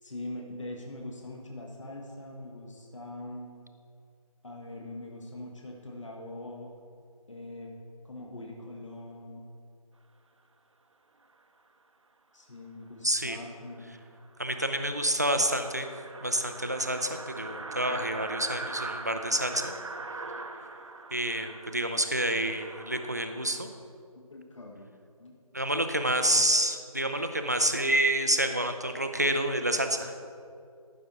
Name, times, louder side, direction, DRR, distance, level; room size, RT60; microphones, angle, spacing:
voice 1, 0.0-3.5 4.4-6.7 7.3-7.7 8.0-9.4 12.3-13.9 24.3-24.9 25.2-25.4 26.3-26.5, left 1 dB, 55° left, 0 dB, 1.3 m, -42 dB
voice 2, 13.0-13.4 14.4-15.9 16.2-19.8 21.1-23.7 25.5-30.1, right 1 dB, 30° right, 7 dB, 0.4 m, -28 dB
sound 1, 13.7-13.8 14.2-14.3 14.6-14.7 14.9-23.6, right 3 dB, 55° right, 0.7 m, -41 dB
14.0 x 6.2 x 3.9 m, 2.3 s
figure-of-eight pair, 170°, 19 cm